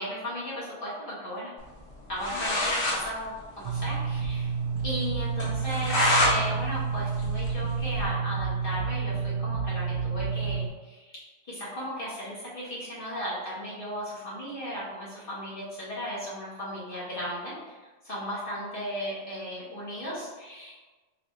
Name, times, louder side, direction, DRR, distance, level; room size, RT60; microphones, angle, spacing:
voice 1, 0.0-1.5 2.1-4.5 4.8-11.1 11.4-20.8, equal, 55° left, -9 dB, 1.2 m, -36 dB
sound 1, 1.9-3.0 3.3-3.4 3.7-3.8 4.2-4.3 4.7-4.8 5.4-6.3 6.7-8.1, left 1 dB, 80° left, 1.7 m, -26 dB
sound 2, 3.6-10.7, right 5 dB, 65° right, 0.8 m, -30 dB
5.5 x 2.2 x 3.0 m, 1.2 s
omnidirectional pair, 1.1 m